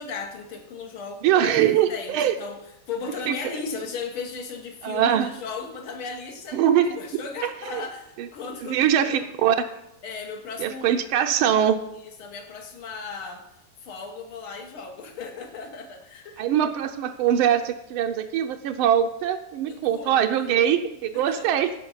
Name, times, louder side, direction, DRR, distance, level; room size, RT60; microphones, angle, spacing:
voice 1, 0.0-2.6 2.9-9.3 10.0-11.1 12.2-13.4 13.8-16.5 19.7-20.5 21.1-21.5, left 5 dB, 90° left, 4 dB, 2.2 m, -36 dB
voice 2, 1.2-2.4 3.3-3.6 4.8-5.3 6.5-7.0 7.4-7.8 8.2-8.3 8.6-9.7 10.6-11.8 16.4-21.7, right 9 dB, 90° right, 5 dB, 1.5 m, -22 dB
14.5 x 5.2 x 5.6 m, 0.82 s
omnidirectional pair, 2.3 m